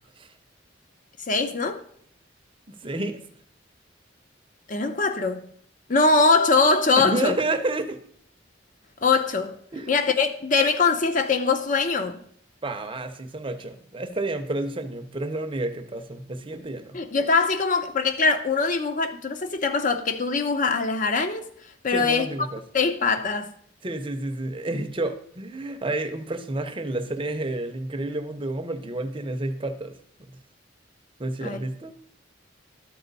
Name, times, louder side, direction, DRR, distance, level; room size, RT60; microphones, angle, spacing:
voice 1, 1.3-1.8 4.7-5.4 5.9-7.4 9.0-9.6 9.9-12.2 16.9-21.4 21.8-22.5 22.7-23.5 31.4-31.6, left 4 dB, 45° left, 0.7 m, -22 dB
voice 2, 2.7-3.2 7.0-8.0 9.7-9.9 12.6-17.0 21.9-22.6 23.8-29.9 31.2-31.9, right 2 dB, 25° right, 0.6 m, -30 dB
12.5 x 4.3 x 4.0 m
head